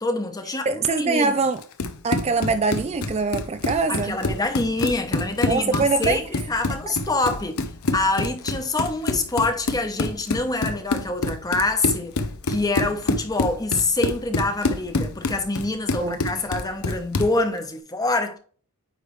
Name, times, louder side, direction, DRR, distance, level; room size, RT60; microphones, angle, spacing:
voice 1, 0.0-1.3 3.9-7.6 7.9-18.4, left 2 dB, 15° left, 0.9 m, -26 dB
voice 2, 0.7-1.6 2.0-4.2 5.5-6.2 16.0-16.4, right 4 dB, 30° right, 0.4 m, -23 dB
Run, 1.6-17.4, left 2 dB, 75° left, 0.8 m, -27 dB
9.4 x 3.4 x 3.2 m
head